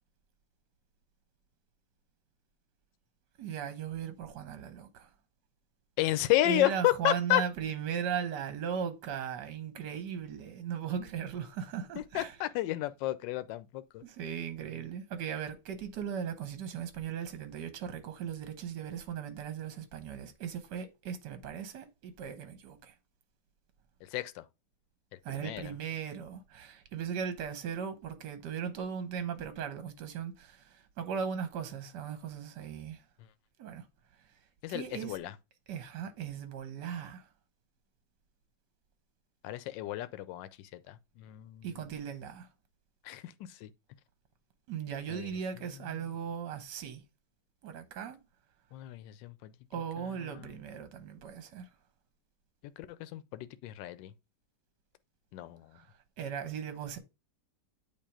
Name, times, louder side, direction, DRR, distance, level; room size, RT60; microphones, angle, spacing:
voice 1, 3.4-5.1 6.4-12.3 14.0-22.9 25.2-33.0 33.6-33.8 34.7-35.2 35.7-37.3 41.6-42.5 44.7-47.0 47.6-48.2 49.7-51.7 55.7-55.9 56.2-57.0, right 7 dB, 70° right, 1.6 m, -38 dB
voice 2, 6.0-7.4 12.0-14.0 24.0-24.4 25.3-25.7 34.6-35.3 39.4-41.8 43.0-43.7 45.1-45.3 48.7-49.5 50.0-50.5 52.8-54.1 55.3-55.7, left 15 dB, 80° left, 1.3 m, -32 dB
8.6 x 2.9 x 4.8 m
omnidirectional pair, 2.0 m